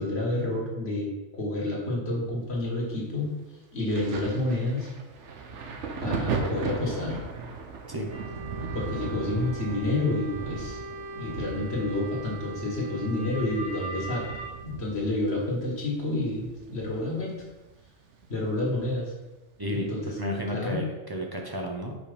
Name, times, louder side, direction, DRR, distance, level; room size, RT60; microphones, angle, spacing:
voice 1, 0.0-3.3 3.7-4.9 6.0-7.2 8.7-10.8 11.2-14.3 14.6-17.4 18.3-19.1 19.7-20.2 20.5-20.9, left 2 dB, 55° left, -3 dB, 1.9 m, -29 dB
Thunder, 3.9-17.2 17.5-18.9 19.7-19.9, right 4 dB, 70° right, 1.1 m, -37 dB
sound 1, 8.1-14.5, right 2 dB, 55° right, 1.4 m, -39 dB
voice 2, 19.6-22.0, equal, 20° right, 0 dB, 0.7 m, -32 dB
5.3 x 5.0 x 5.1 m, 1.1 s
omnidirectional pair, 1.3 m